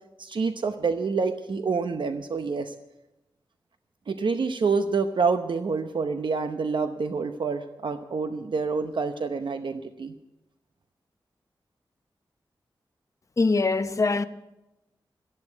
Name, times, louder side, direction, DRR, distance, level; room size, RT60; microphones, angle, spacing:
voice 1, 0.2-2.7 4.1-10.1, right 4 dB, 70° right, 0.8 m, -27 dB
voice 2, 13.4-14.2, left 3 dB, 40° left, 0.7 m, -23 dB
13.0 x 11.0 x 8.1 m
wide cardioid pair, 105°, 9 cm